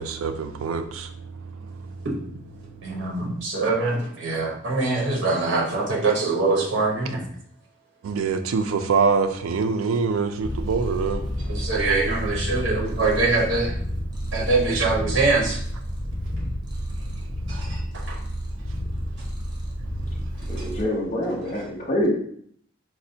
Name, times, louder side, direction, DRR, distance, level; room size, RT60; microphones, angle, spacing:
voice 1, 0.0-2.1 2.6-3.5 8.0-11.7 17.0-17.2 18.7-18.8, right 5 dB, 90° right, 0.3 m, -26 dB
voice 2, 2.8-7.2 11.5-13.7 14.3-15.6 17.5-17.8 18.1-18.2 20.6-20.7, right 3 dB, 60° right, 0.8 m, -23 dB
Purr, 10.4-20.8, equal, 20° right, 0.5 m, -30 dB
voice 3, 20.5-22.1, left 1 dB, 35° left, 0.6 m, -25 dB
4.0 x 2.1 x 2.7 m
head